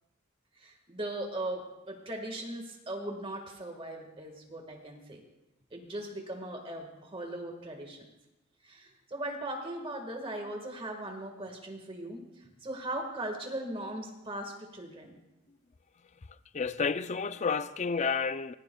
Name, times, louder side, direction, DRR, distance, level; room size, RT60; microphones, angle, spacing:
voice 1, 0.6-5.2 5.7-8.0 8.6-15.2, right 1 dB, 25° right, 1.6 m, -39 dB
voice 2, 16.5-18.5, left 5 dB, 35° left, 0.4 m, -30 dB
25.0 x 19.5 x 2.3 m
head